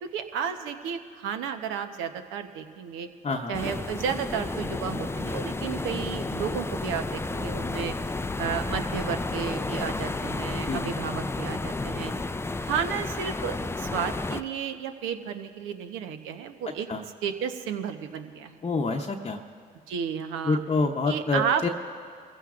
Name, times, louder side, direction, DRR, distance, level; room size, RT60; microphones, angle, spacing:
voice 1, 0.0-3.1 3.5-7.9 8.4-12.1 12.6-16.9 17.2-18.6 19.9-20.6 21.1-21.7, right 7 dB, 80° right, 7 dB, 1.0 m, -32 dB
voice 2, 3.2-3.5 10.7-10.8 16.9-17.0 18.6-19.4 20.5-21.7, left 3 dB, 30° left, 2 dB, 0.8 m, -27 dB
sound 1, 3.5-14.4, left 3 dB, 10° left, 0.4 m, -32 dB
25.5 x 15.5 x 2.5 m, 2.1 s
hypercardioid pair, 60°, 20 cm